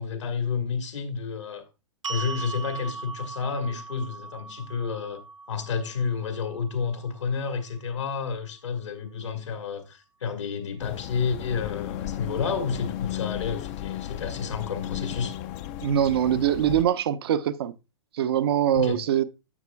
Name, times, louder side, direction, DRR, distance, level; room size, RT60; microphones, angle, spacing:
voice 1, 0.0-1.6 2.1-5.2 5.5-15.4 18.7-19.0, left 5 dB, 65° left, 1.6 m, -30 dB
sound 1, 2.0-8.3, right 4 dB, 75° right, 1.3 m, -40 dB
sound 2, 10.8-16.8, left 12 dB, 35° left, 0.6 m, -35 dB
voice 2, 15.8-17.7 18.1-19.2, right 10 dB, 50° right, 0.7 m, -23 dB
11.0 x 6.7 x 2.2 m
figure-of-eight pair, 110°, 16 cm